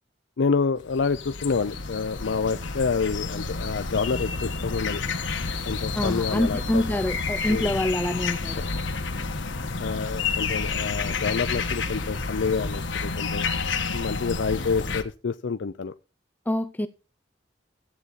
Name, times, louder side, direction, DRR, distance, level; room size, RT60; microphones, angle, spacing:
voice 1, 0.4-5.0 5.7-6.8 7.5-7.7 8.6-8.8 9.2-13.5 13.9-15.9, left 5 dB, 75° left, 0.5 m, -28 dB
sound 1, 0.8-15.0, left 4 dB, 90° left, 1.2 m, -30 dB
voice 2, 5.9-8.6 16.5-16.9, left 1 dB, 10° left, 0.4 m, -26 dB
13.5 x 8.2 x 4.0 m
head